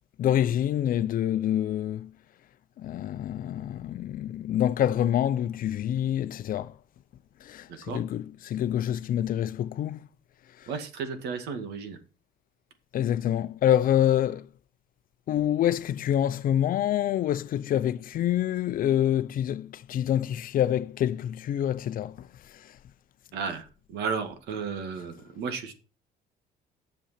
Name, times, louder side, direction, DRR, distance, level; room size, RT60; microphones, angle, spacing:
voice 1, 0.2-2.1 2.8-6.7 7.4-10.0 10.6-10.7 12.9-14.5 15.3-22.3, left 11 dB, 55° left, 0.6 m, -26 dB
voice 2, 10.7-12.0 23.3-23.7 23.9-25.7, right 5 dB, 80° right, 2.1 m, -33 dB
10.0 x 7.0 x 5.9 m
cardioid pair, 110°, 17 cm